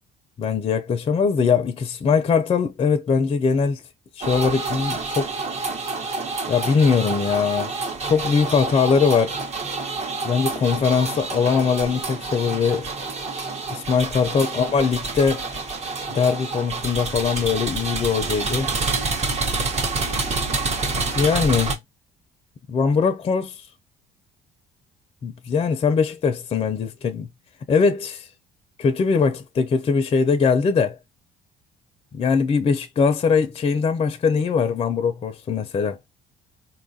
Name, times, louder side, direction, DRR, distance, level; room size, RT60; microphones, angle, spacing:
voice 1, 0.4-3.8 4.2-5.3 6.5-7.7 8.0-9.3 10.2-12.9 13.7-15.4 16.1-18.7 21.0-21.8 22.7-23.6 25.2-27.3 27.7-28.2 28.8-31.0 32.1-36.0, left 5 dB, 35° left, 0.5 m, -21 dB
sound 1, 4.2-21.7, right 3 dB, 40° right, 0.9 m, -28 dB
4.0 x 2.4 x 2.6 m
cardioid pair, 110°, 17 cm